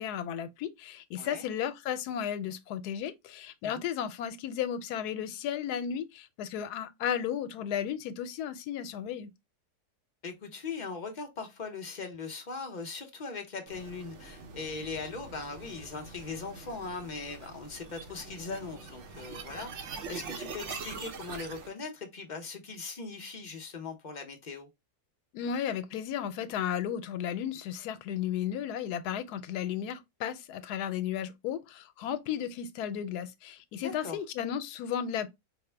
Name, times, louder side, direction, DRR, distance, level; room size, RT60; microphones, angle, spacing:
voice 1, 0.0-9.3 25.3-35.3, left 9 dB, 85° left, 1.1 m, -34 dB
voice 2, 10.2-19.7 20.1-24.7 33.8-34.2, left 4 dB, 45° left, 0.6 m, -40 dB
sound 1, 13.7-21.7, right 4 dB, 60° right, 0.9 m, -44 dB
4.8 x 2.0 x 3.3 m
omnidirectional pair, 1.6 m